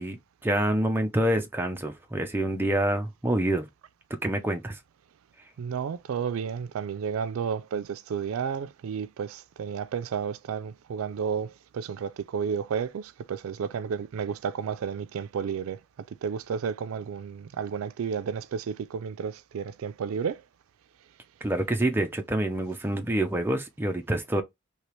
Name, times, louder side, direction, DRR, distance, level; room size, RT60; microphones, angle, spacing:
voice 1, 0.0-3.7 4.2-4.8 21.4-24.4, right 1 dB, 10° right, 0.5 m, -27 dB
voice 2, 5.6-15.8 16.2-20.4, right 7 dB, 80° right, 0.3 m, -32 dB
3.2 x 2.8 x 3.0 m
head